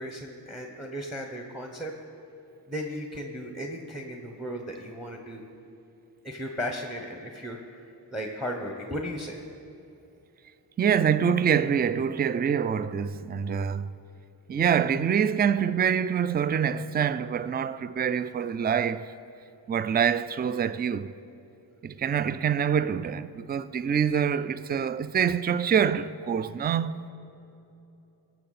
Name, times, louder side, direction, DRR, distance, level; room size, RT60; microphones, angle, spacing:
voice 1, 0.0-1.9 2.7-5.5 6.2-7.8 8.1-9.4, equal, ahead, 1.0 m, -35 dB
voice 2, 10.8-13.9 14.5-19.1 19.7-21.1 21.8-27.1, right 7 dB, 25° right, 0.3 m, -25 dB
18.5 x 6.9 x 4.1 m
cardioid pair, 60°, 42 cm